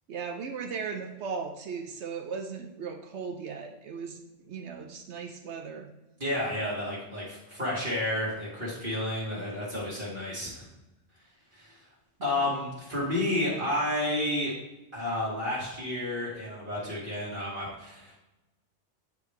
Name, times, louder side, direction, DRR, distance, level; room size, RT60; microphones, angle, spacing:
voice 1, 0.1-5.9 12.2-12.5, right 5 dB, 70° right, 4 dB, 0.9 m, -37 dB
voice 2, 6.2-10.6 11.5-11.8 12.2-14.5 14.9-18.1, left 1 dB, 45° right, -8 dB, 1.9 m, -31 dB
9.5 x 3.3 x 3.2 m, 1.0 s
omnidirectional pair, 1.2 m